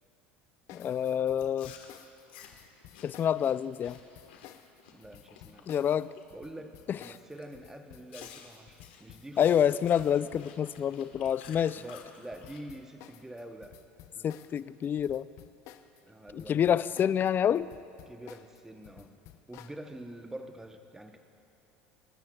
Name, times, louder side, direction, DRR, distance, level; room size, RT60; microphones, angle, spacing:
sound 1, 0.7-16.0 16.3-19.8, left 12 dB, 60° left, 0.7 m, -53 dB
voice 1, 0.7-1.7 3.0-4.0 5.7-6.1 9.4-11.8 14.2-15.3 16.3-17.7, left 9 dB, 35° left, 17 dB, 0.4 m, -27 dB
Chewing mastication, 1.4-6.2 6.6-6.9 7.4-7.5 8.1-12.6, left 8 dB, 80° left, 1.3 m, -53 dB
voice 2, 4.9-5.9 6.3-9.6 11.7-13.8 14.1-14.3 16.1-17.0 18.1-19.2 19.5-21.2, right 1 dB, 10° right, 6 dB, 0.9 m, -46 dB
28.0 x 13.0 x 2.3 m, 2.9 s
hypercardioid pair, 85°, 6 cm